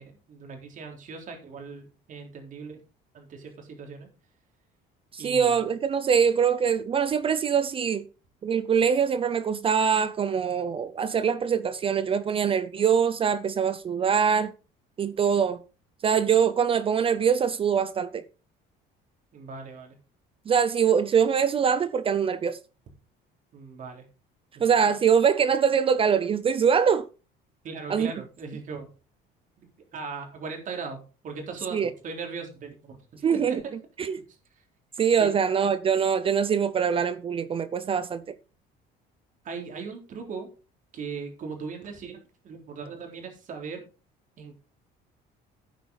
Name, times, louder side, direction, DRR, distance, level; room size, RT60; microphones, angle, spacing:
voice 1, 0.0-2.8 3.1-4.1 5.2-5.7 19.3-19.9 23.5-24.0 24.5-24.6 27.6-28.9 29.6-31.0 31.2-33.7 35.2-35.3 39.4-40.5 40.9-43.8 44.4-44.5, right 5 dB, 45° right, 3.9 m, -39 dB
voice 2, 5.1-8.1 8.4-14.5 15.0-15.6 16.0-18.2 20.5-22.6 24.6-27.1 27.9-28.1 31.7-31.9 33.2-33.6 34.0-34.2 35.0-38.3, right 7 dB, 30° right, 0.6 m, -23 dB
12.5 x 9.3 x 4.0 m
cardioid pair, 145°, 18 cm